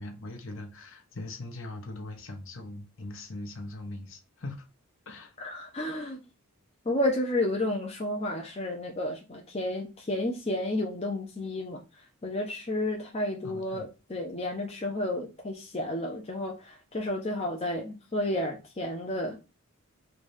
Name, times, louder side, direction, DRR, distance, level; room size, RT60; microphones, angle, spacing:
voice 1, 0.0-4.6 5.1-5.3 13.4-13.9, left 2 dB, 60° left, 0.8 m, -41 dB
voice 2, 5.4-6.2 6.9-11.8 12.2-19.4, left 1 dB, 25° left, 0.5 m, -31 dB
3.2 x 2.6 x 3.2 m
head